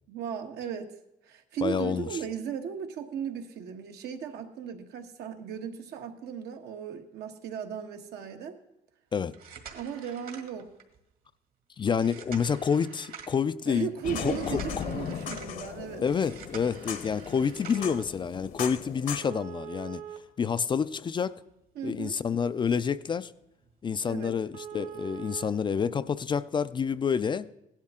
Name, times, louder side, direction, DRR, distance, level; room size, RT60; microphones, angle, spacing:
voice 1, 0.1-0.9 1.3-8.6 9.7-10.7 13.7-16.0 21.7-22.2 24.0-24.4, right 8 dB, 75° right, 4 dB, 1.4 m, -36 dB
voice 2, 1.6-2.1 9.1-9.3 11.8-13.9 14.2-14.8 16.0-20.0 20.4-21.3 21.8-23.3 23.8-27.5, left 6 dB, 30° left, 13 dB, 0.4 m, -28 dB
sound 1, 9.3-11.0 11.9-13.5 14.3-15.5 16.1-18.0 19.2-21.1 21.5-21.6 22.2-22.3 22.7-22.9 23.1-23.2 23.6-23.7 24.0-24.1 24.5-25.5 26.6-26.7, right 8 dB, 60° right, 1.9 m, -44 dB
sound 2, 14.0-19.2, left 7 dB, 55° left, 0.9 m, -37 dB
16.5 x 11.5 x 3.7 m, 0.86 s
cardioid pair, 110°, 17 cm